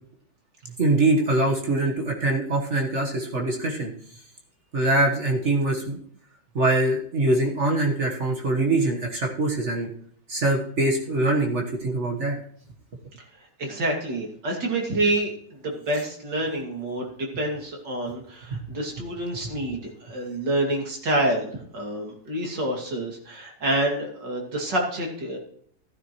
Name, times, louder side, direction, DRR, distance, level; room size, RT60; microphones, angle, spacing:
voice 1, 0.6-3.9 4.7-6.0 6.5-9.9 10.3-12.4 18.5-18.6, right 2 dB, 45° right, 1 dB, 1.6 m, -23 dB
voice 2, 13.6-15.3 15.6-17.1 17.4-25.4, right 1 dB, 75° right, 0 dB, 3.1 m, -27 dB
15.5 x 9.9 x 3.1 m, 0.62 s
omnidirectional pair, 1.9 m